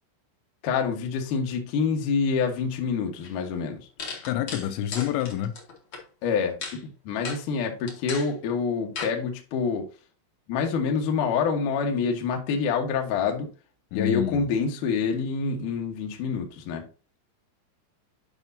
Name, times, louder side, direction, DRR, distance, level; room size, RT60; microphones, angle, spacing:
voice 1, 0.6-3.9 6.2-9.9 10.5-13.5 13.9-16.8, left 5 dB, 70° left, 2.0 m, -27 dB
sound 1, 3.2-3.3 4.0-6.0 6.6-6.8 7.2-7.4 7.9-8.3 9.0-9.1, left 4 dB, 50° left, 1.7 m, -35 dB
voice 2, 4.2-5.6 13.9-14.5, left 12 dB, 85° left, 2.8 m, -28 dB
10.5 x 5.3 x 2.7 m
omnidirectional pair, 5.4 m